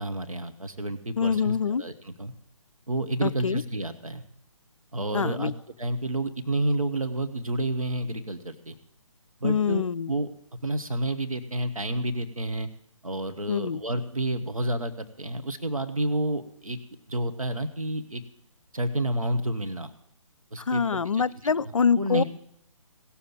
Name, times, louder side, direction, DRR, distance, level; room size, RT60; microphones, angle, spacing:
voice 1, 0.0-2.3 2.9-4.2 4.9-5.5 5.8-8.7 9.4-12.7 13.0-16.8 17.1-18.2 18.7-19.9 20.5-20.8 21.1-21.5 22.0-22.2, right 1 dB, 80° right, 8 dB, 1.1 m, -30 dB
voice 2, 1.2-1.8 3.2-3.6 5.1-5.5 9.4-10.1 13.5-13.8 20.7-22.2, left 6 dB, 70° left, 16 dB, 0.4 m, -25 dB
17.5 x 7.2 x 7.4 m, 0.74 s
figure-of-eight pair, 140°, 17 cm